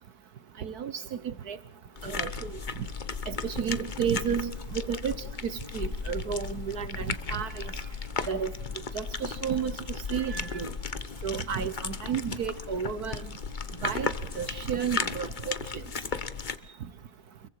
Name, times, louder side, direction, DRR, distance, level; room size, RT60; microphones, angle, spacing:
voice 1, 0.6-1.6 2.0-2.5 3.3-5.2 5.4-7.6 8.3-8.5 8.9-9.8 10.1-10.7 11.2-13.2 13.8-14.1 14.3-15.5, right 7 dB, 55° right, 14 dB, 1.4 m, -32 dB
sound 1, 2.0-16.6, left 5 dB, 35° left, 0.8 m, -35 dB
29.5 x 22.5 x 4.8 m, 0.80 s
omnidirectional pair, 2.3 m